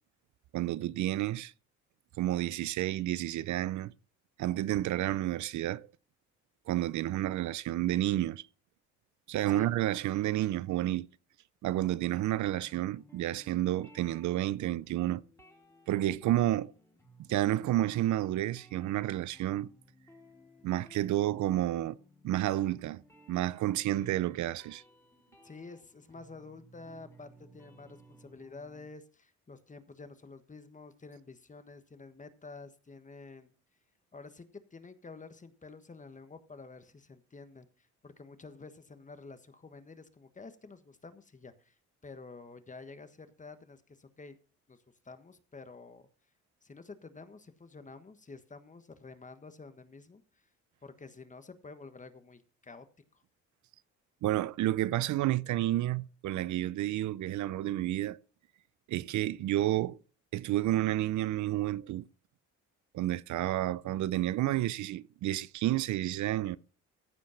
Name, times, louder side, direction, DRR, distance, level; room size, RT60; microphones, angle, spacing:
voice 1, 0.5-1.5 2.2-3.9 4.4-5.9 6.7-8.4 9.3-11.1 11.6-15.2 15.9-16.7 17.2-19.7 20.6-22.0 22.2-23.0 23.3-24.8 54.2-58.2 58.9-60.0 60.3-62.0 62.9-66.6, right 14 dB, 70° right, 0.6 m, -30 dB
sound 1, 12.3-28.9, right 1 dB, 10° left, 2.9 m, -59 dB
voice 2, 25.4-33.5 34.1-44.4 44.7-46.1 46.6-50.5 50.8-52.9 53.1-53.2, left 3 dB, 25° left, 1.4 m, -50 dB
15.0 x 5.2 x 5.7 m
cardioid pair, 90°, 30 cm